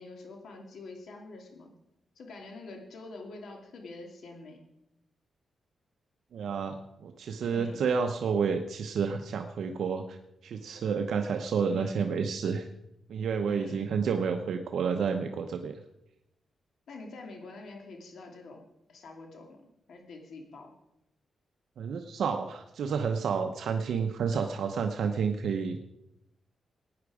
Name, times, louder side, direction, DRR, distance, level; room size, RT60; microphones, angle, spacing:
voice 1, 0.0-1.7 2.2-4.6 7.5-7.8 11.6-12.2 13.4-14.0 16.9-20.7, left 2 dB, 75° left, 3 dB, 2.6 m, -46 dB
voice 2, 6.3-10.2 10.4-12.7 13.1-15.8 21.8-25.8, right 6 dB, 80° right, 5 dB, 0.8 m, -30 dB
16.5 x 9.5 x 4.9 m, 0.86 s
cardioid pair, 115°, 0 cm